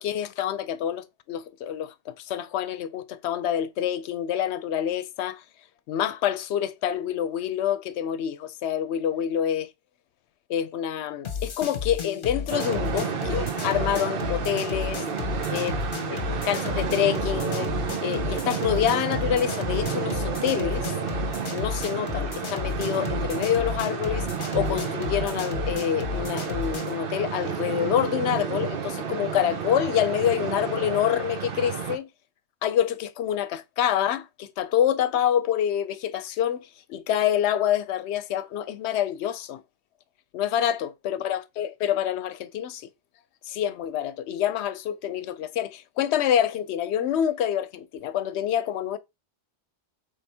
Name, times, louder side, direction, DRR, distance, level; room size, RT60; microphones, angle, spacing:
voice 1, 0.0-5.4 5.9-9.7 10.5-15.0 15.5-15.8 16.1-17.7 18.0-20.9 21.5-24.3 24.5-32.1 32.6-39.6 40.3-42.9 43.5-49.0, left 10 dB, 85° left, 0.8 m, -27 dB
sound 1, 11.2-27.0, left 6 dB, 55° left, 1.0 m, -33 dB
sound 2, 12.5-32.0, right 7 dB, 60° right, 0.9 m, -31 dB
4.3 x 3.4 x 3.4 m
omnidirectional pair, 1.1 m